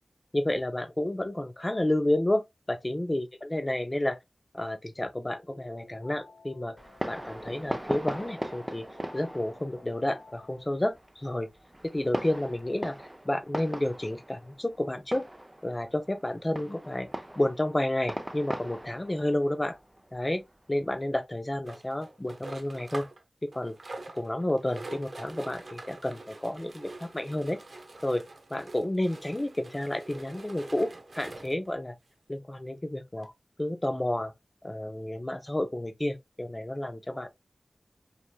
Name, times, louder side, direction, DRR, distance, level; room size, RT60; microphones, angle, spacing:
voice 1, 0.3-4.2 4.5-6.8 7.1-8.9 9.1-11.5 11.8-15.3 15.6-17.1 17.4-19.8 20.1-23.1 23.4-23.8 24.1-27.6 28.0-28.3 28.5-31.9 32.3-33.3 33.6-34.3 34.6-37.3, left 1 dB, 25° left, 0.6 m, -30 dB
sound 1, 5.3-10.7, left 3 dB, 70° left, 1.0 m, -53 dB
Fireworks, 6.8-20.9, right 1 dB, 15° right, 0.5 m, -39 dB
sound 2, 21.6-23.2 23.5-31.7 32.3-32.4 32.7-32.8 33.2-33.3, right 2 dB, 60° right, 0.9 m, -45 dB
4.7 x 3.5 x 2.2 m
wide cardioid pair, 60°, 0 cm